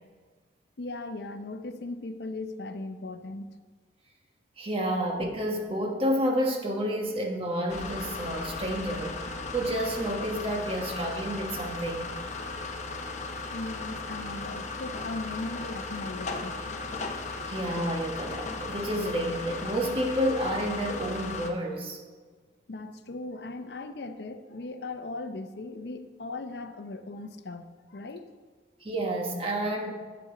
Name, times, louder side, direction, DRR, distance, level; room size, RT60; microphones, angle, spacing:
voice 1, 0.8-3.5 13.5-16.7 22.7-28.3, left 2 dB, 65° left, 9 dB, 0.6 m, -38 dB
voice 2, 4.6-9.2 9.5-12.1 17.5-22.0 28.8-29.9, equal, 35° right, 1 dB, 1.3 m, -30 dB
sound 1, 7.7-21.5, left 3 dB, 40° left, 0.9 m, -36 dB
11.5 x 7.7 x 3.8 m, 1.5 s
head